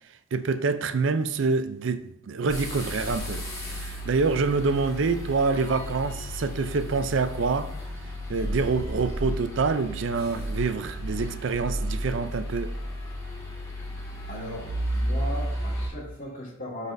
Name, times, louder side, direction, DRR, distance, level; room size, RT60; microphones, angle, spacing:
voice 1, 0.3-3.4 3.7-7.7 8.3-12.7, right 4 dB, 65° right, 0.4 m, -26 dB
sound 1, 2.5-15.9, equal, 15° left, 1.6 m, -33 dB
voice 2, 14.3-16.9, left 1 dB, 40° left, 1.8 m, -37 dB
12.0 x 4.1 x 2.6 m
head